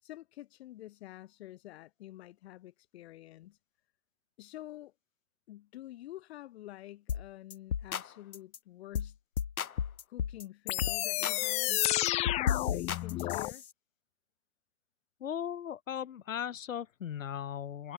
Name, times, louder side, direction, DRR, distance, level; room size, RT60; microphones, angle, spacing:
voice 1, 0.0-3.6 4.4-4.9 5.5-9.2 10.1-11.9 12.7-13.6, left 15 dB, 50° left, 3.5 m, -48 dB
sound 1, 7.1-7.3 7.5-8.1 8.3-8.6 8.9-9.1 9.4-10.4 10.8-11.4 11.6-13.7, left 8 dB, 85° left, 1.7 m, -34 dB
sound 2, 10.7-13.5, left 17 dB, 15° left, 0.8 m, -31 dB
voice 2, 15.2-17.9, left 9 dB, 65° left, 4.6 m, -37 dB
hypercardioid pair, 135°, 42 cm